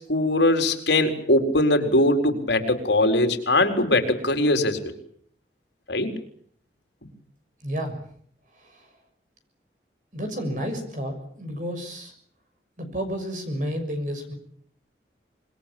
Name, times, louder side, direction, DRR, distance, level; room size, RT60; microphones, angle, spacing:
voice 1, 0.0-4.8 5.9-6.1, left 1 dB, 80° left, 5 dB, 4.3 m, -21 dB
voice 2, 7.6-8.0 10.1-12.1 12.8-14.3, equal, 45° right, 6 dB, 6.6 m, -31 dB
26.0 x 22.0 x 8.6 m, 0.64 s
head